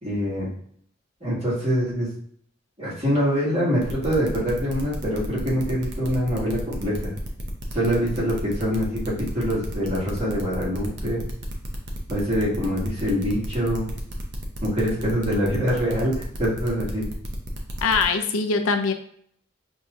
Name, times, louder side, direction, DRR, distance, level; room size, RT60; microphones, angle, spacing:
voice 1, 0.0-0.5 1.2-2.1 2.8-7.1 7.7-11.2 12.1-13.9 14.6-17.1, equal, 30° right, -8 dB, 1.7 m, -24 dB
sound 1, 3.8-18.0, equal, 55° right, 0.6 m, -35 dB
voice 2, 17.8-18.9, left 4 dB, 90° left, 7 dB, 0.5 m, -22 dB
5.7 x 2.7 x 2.4 m, 0.63 s
head